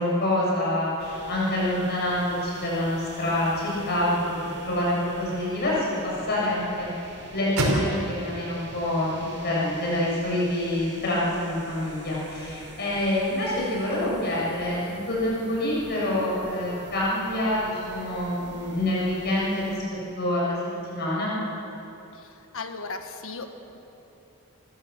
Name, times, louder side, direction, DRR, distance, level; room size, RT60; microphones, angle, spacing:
voice 1, 0.0-19.8 20.1-20.6 20.9-21.3, left 1 dB, 50° left, -6 dB, 7.4 m, -26 dB
sound 1, 1.0-19.8, right 1 dB, 55° right, 5.9 m, -45 dB
sound 2, 4.0-10.2, right 1 dB, 85° right, 4.8 m, -34 dB
voice 2, 22.1-23.8, left 3 dB, 65° left, 7 dB, 1.5 m, -37 dB
29.5 x 15.0 x 7.7 m, 2.9 s
head